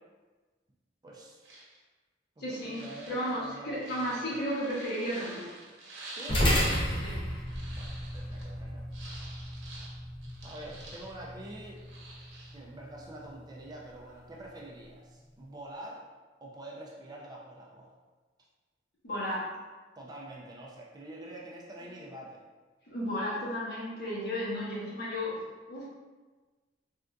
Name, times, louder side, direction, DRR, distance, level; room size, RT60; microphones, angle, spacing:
voice 1, 1.0-1.5 2.4-4.4 6.1-6.4 7.7-8.9 10.4-11.8 12.5-16.1 16.4-17.9 20.0-22.4, right 1 dB, 20° right, -2 dB, 0.3 m, -46 dB
sound 1, 1.4-1.8 2.6-6.8 7.1-8.5 8.9-11.3 11.7-12.6, right 2 dB, 70° right, 0.8 m, -48 dB
voice 2, 2.4-5.5 7.0-7.2 19.0-19.5 22.9-25.4 25.7-25.9, equal, 60° left, -6 dB, 1.0 m, -34 dB
sound 2, 6.3-14.9, equal, 25° left, 0.6 m, -34 dB
3.5 x 2.5 x 2.2 m, 1.3 s
head